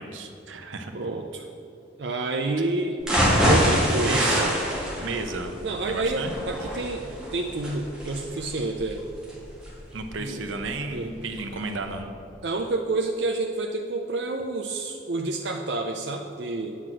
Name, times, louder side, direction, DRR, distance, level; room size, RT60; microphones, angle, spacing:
voice 1, 0.0-0.9 2.6-2.7 4.0-4.5 5.0-5.5 5.9-6.3 9.9-12.1, right 3 dB, 85° right, 5 dB, 0.9 m, -32 dB
voice 2, 0.9-1.4 2.0-3.0 3.4-4.4 5.6-9.0 10.2-10.4 10.9-11.1 12.4-16.8, right 2 dB, 60° right, 2 dB, 0.5 m, -29 dB
sound 1, 3.0-11.0 11.4-11.5 11.9-12.0, equal, 5° right, 1.7 m, -25 dB
9.4 x 6.0 x 6.2 m, 2.7 s
head